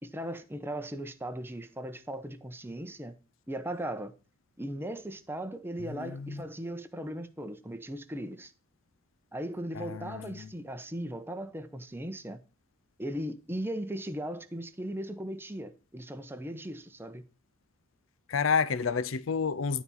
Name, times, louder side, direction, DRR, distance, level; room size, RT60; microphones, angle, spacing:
voice 1, 0.0-3.1 3.5-4.1 4.6-8.5 9.3-12.4 13.0-17.2, right 1 dB, 10° right, 0.8 m, -38 dB
voice 2, 6.0-6.4 9.8-10.5 18.3-19.8, left 5 dB, 70° left, 0.5 m, -30 dB
12.0 x 4.2 x 7.3 m
head